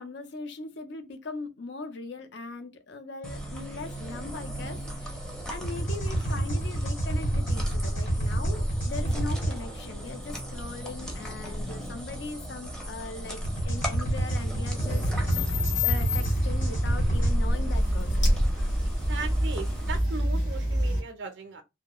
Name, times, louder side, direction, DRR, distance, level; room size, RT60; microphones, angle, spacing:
voice 1, 0.0-15.4 15.8-18.3, left 3 dB, 60° left, 0.5 m, -40 dB
sound 1, 3.2-20.0, equal, 5° left, 0.5 m, -32 dB
sound 2, 5.6-9.5 13.4-17.3, right 1 dB, 40° left, 1.1 m, -29 dB
sound 3, 14.9-21.0, left 1 dB, 80° left, 1.1 m, -28 dB
voice 2, 19.1-21.6, right 4 dB, 60° right, 0.5 m, -38 dB
2.3 x 2.1 x 2.9 m
head